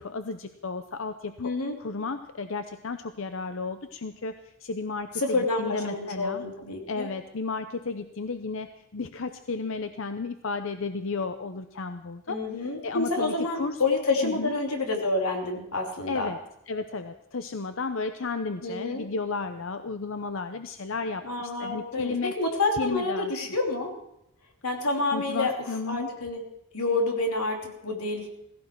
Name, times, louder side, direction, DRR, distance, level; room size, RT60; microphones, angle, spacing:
voice 1, 0.0-6.4 6.9-12.4 12.8-13.8 14.2-14.5 16.1-16.4 16.7-22.4 22.8-23.3 25.1-26.1, left 4 dB, 60° left, 9 dB, 0.7 m, -33 dB
voice 2, 1.4-1.8 5.2-7.1 12.3-16.3 18.6-19.0 21.2-23.9 24.6-26.4 26.7-28.3, left 2 dB, 90° left, 2 dB, 2.9 m, -28 dB
17.0 x 16.0 x 4.6 m, 0.80 s
head